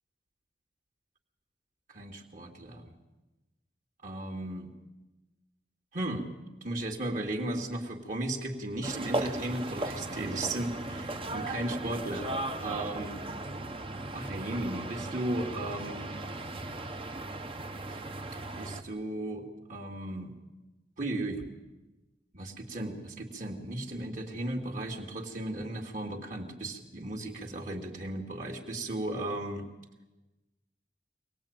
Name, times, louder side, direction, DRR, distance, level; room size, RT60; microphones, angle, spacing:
voice 1, 1.9-3.0 4.0-4.7 5.9-6.3 6.6-12.3 12.6-13.2 14.1-16.2 17.9-18.0 18.6-19.4 19.7-20.3 21.0-21.4 22.3-29.6, right 1 dB, 45° right, 2 dB, 2.6 m, -35 dB
sound 1, 8.8-18.8, right 2 dB, 30° right, 1.3 m, -37 dB
25.0 x 19.0 x 9.0 m, 1.1 s
head